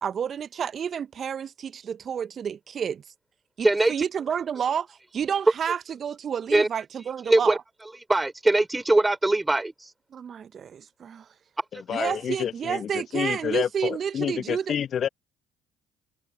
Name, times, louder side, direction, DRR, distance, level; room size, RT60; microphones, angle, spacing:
voice 1, 0.0-3.0 3.6-7.6 10.1-11.3 11.9-14.8, right 7 dB, 50° right, 1.1 m, -30 dB
voice 2, 3.6-3.9 6.5-6.7 7.3-7.6 8.1-9.7 12.0-12.1, right 2 dB, 15° right, 3.4 m, -21 dB
voice 3, 11.7-15.1, left 8 dB, 50° left, 1.3 m, -29 dB
hypercardioid pair, 50°, 0 cm